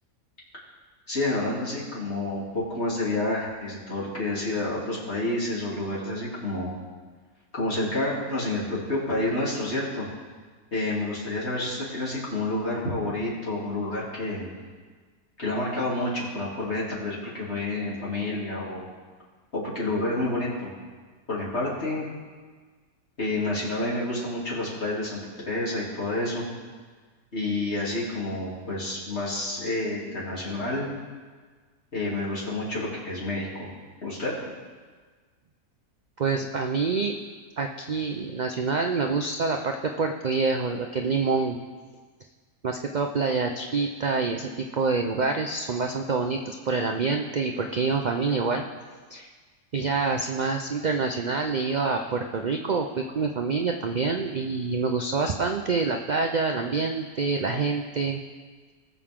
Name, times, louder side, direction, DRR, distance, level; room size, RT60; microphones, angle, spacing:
voice 1, 1.1-6.7 7.5-10.1 10.7-14.5 15.4-18.8 19.5-20.7 21.3-22.1 23.2-26.4 27.3-30.9 31.9-33.7 34.0-34.3, left 2 dB, 45° left, -7 dB, 3.3 m, -29 dB
voice 2, 36.2-37.1 37.6-41.6 42.6-48.6 49.1-49.3 49.7-58.2, right 4 dB, 60° right, 3 dB, 0.4 m, -26 dB
20.0 x 7.0 x 3.7 m, 1.5 s
omnidirectional pair, 1.5 m